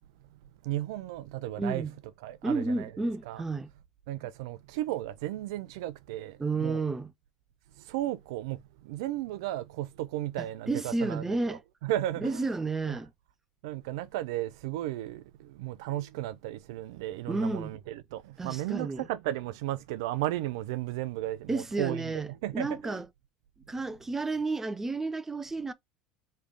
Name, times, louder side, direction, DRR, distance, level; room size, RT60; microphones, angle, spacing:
voice 1, 0.6-1.9 2.2-3.4 4.1-6.8 7.8-12.5 12.9-13.0 13.6-23.0, right 14 dB, 70° right, 0.4 m, -35 dB
voice 2, 1.6-1.9 2.4-3.7 6.4-7.1 10.4-11.6 12.2-13.1 17.3-17.7 18.4-19.1 21.5-22.3 22.5-23.0 23.7-25.7, right 3 dB, 15° right, 0.5 m, -31 dB
3.3 x 3.2 x 3.7 m
hypercardioid pair, 75°, 2 cm